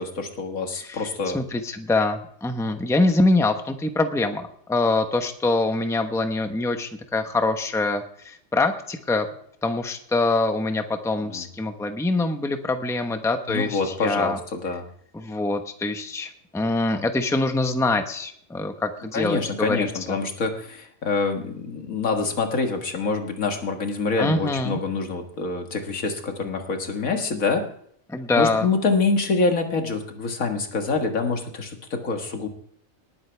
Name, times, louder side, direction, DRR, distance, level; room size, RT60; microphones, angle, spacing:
voice 1, 0.0-1.4 11.3-11.4 13.5-14.8 19.1-27.6 28.4-32.5, left 4 dB, 80° left, 4 dB, 2.1 m, -26 dB
voice 2, 1.3-9.3 9.6-14.4 15.1-20.2 24.2-24.8 28.1-28.7, left 2 dB, ahead, 6 dB, 0.9 m, -24 dB
19.5 x 9.5 x 3.4 m, 0.64 s
omnidirectional pair, 1.4 m